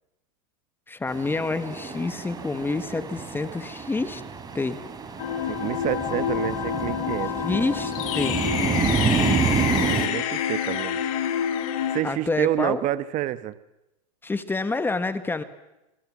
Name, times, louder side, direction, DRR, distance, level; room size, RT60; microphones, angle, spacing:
voice 1, 0.9-4.2 4.5-4.8 7.4-8.4 12.0-12.8 14.2-15.4, left 3 dB, 10° left, 11 dB, 1.4 m, -28 dB
sound 1, 1.1-10.1, right 5 dB, 20° right, 3.5 m, -29 dB
sound 2, 5.2-12.0, left 9 dB, 65° left, 3.8 m, -27 dB
voice 2, 5.5-7.4 10.0-11.0 11.9-13.6, right 14 dB, 40° right, 14 dB, 1.3 m, -28 dB
27.0 x 23.5 x 7.4 m, 0.93 s
hypercardioid pair, 125°, 20 cm